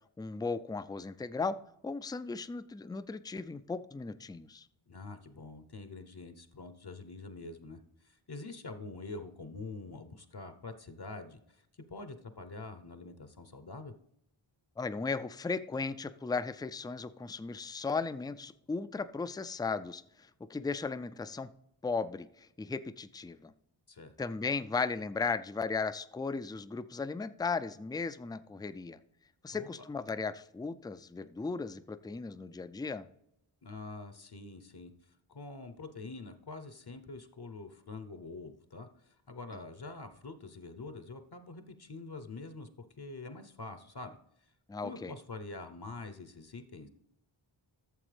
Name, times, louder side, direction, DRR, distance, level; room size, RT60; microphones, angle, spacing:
voice 1, 0.2-1.6 1.8-4.7 14.8-21.5 21.8-23.5 24.2-29.0 29.4-33.1 44.7-45.1, left 4 dB, 10° left, 12 dB, 0.3 m, -36 dB
voice 2, 4.9-11.6 11.9-13.9 23.9-24.1 29.5-29.7 33.6-34.9 35.3-42.7 43.0-44.2 44.8-46.9, left 3 dB, 50° left, 9 dB, 0.8 m, -45 dB
12.5 x 7.0 x 3.3 m, 0.78 s
wide cardioid pair, 50°, 49 cm